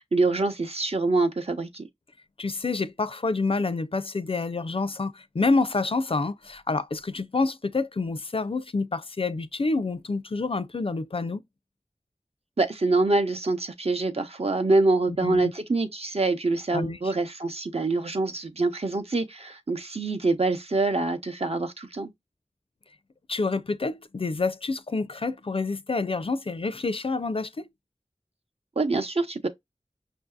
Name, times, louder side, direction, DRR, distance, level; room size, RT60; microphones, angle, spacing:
voice 1, 0.0-1.9 12.6-22.1 28.8-29.5, right 3 dB, 60° right, 0.7 m, -25 dB
voice 2, 2.4-11.4 15.2-15.5 16.7-17.1 23.3-27.7, left 3 dB, 50° left, 0.4 m, -28 dB
5.5 x 2.6 x 2.3 m
wide cardioid pair, 40°, 12 cm